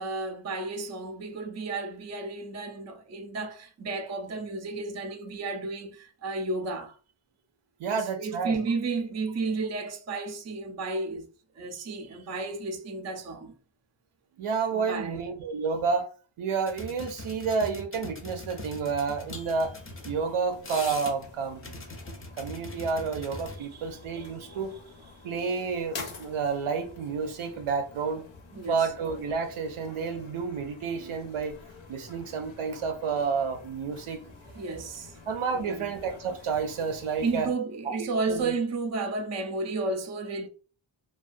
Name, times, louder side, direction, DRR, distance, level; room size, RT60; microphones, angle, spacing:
voice 1, 0.0-7.0 7.9-11.3 11.5-13.5 14.7-15.2 23.6-23.9 24.1-24.5 28.5-28.9 34.4-35.2 35.5-35.9 37.2-40.5, right 3 dB, 35° right, 0.4 m, -33 dB
voice 2, 7.8-8.6 14.4-16.1 16.4-19.7 20.0-21.7 22.4-24.8 25.2-28.2 28.7-31.6 31.9-34.3 35.3-37.5 37.9-38.5, right 5 dB, 90° right, 0.6 m, -30 dB
sound 1, 16.7-20.2 20.5-21.3 21.6-23.6, left 2 dB, 30° left, 0.5 m, -41 dB
sound 2, 19.1-37.5, left 3 dB, 70° left, 0.7 m, -48 dB
2.4 x 2.2 x 2.4 m
wide cardioid pair, 100°, 48 cm